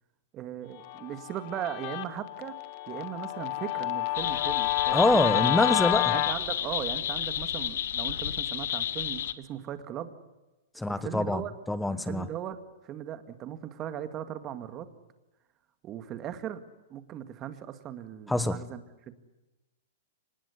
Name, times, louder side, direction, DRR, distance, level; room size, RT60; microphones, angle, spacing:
voice 1, 0.3-2.6 2.9-5.7 6.1-10.1 10.9-11.5 11.9-14.9 15.8-16.6 16.9-19.1, right 10 dB, 25° right, 10 dB, 2.1 m, -38 dB
Guitar, 0.8-6.4, left 16 dB, 40° left, 1.5 m, -29 dB
sound 1, 4.1-9.3, left 10 dB, 70° left, 1.5 m, -32 dB
voice 2, 4.9-6.1 10.8-11.4 11.7-12.2 18.3-18.6, left 1 dB, 5° left, 14 dB, 1.2 m, -25 dB
25.5 x 20.0 x 9.6 m, 1.1 s
hypercardioid pair, 150°, 0 cm